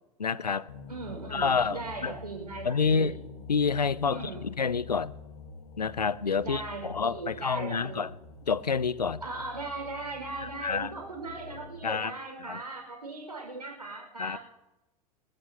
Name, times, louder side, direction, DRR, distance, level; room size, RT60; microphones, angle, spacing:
voice 1, 0.2-0.7 1.3-2.1 2.6-3.1 3.5-5.1 5.8-8.1 8.5-9.2 10.4-10.9 11.8-12.1 12.4-12.6 14.2-14.4, left 5 dB, 85° left, 0.6 m, -28 dB
sound 1, 0.7-12.0, left 5 dB, 70° left, 1.8 m, -46 dB
voice 2, 0.9-3.1 4.0-4.5 6.4-8.1 9.2-14.4, right 3 dB, 85° right, 5.8 m, -38 dB
29.0 x 13.0 x 3.0 m
figure-of-eight pair, 85°, 20 cm